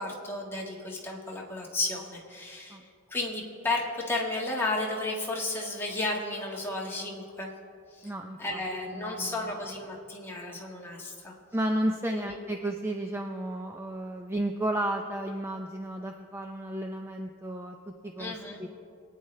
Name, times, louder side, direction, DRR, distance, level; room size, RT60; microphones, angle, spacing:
voice 1, 0.0-2.8 3.1-7.5 7.9-8.1 8.4-11.4 12.1-12.4 18.2-18.6, left 2 dB, 10° left, -3 dB, 1.6 m, -33 dB
voice 2, 8.0-8.6 8.9-9.4 11.5-18.7, right 1 dB, 10° right, 3 dB, 0.5 m, -33 dB
24.0 x 9.4 x 3.2 m, 2.4 s
head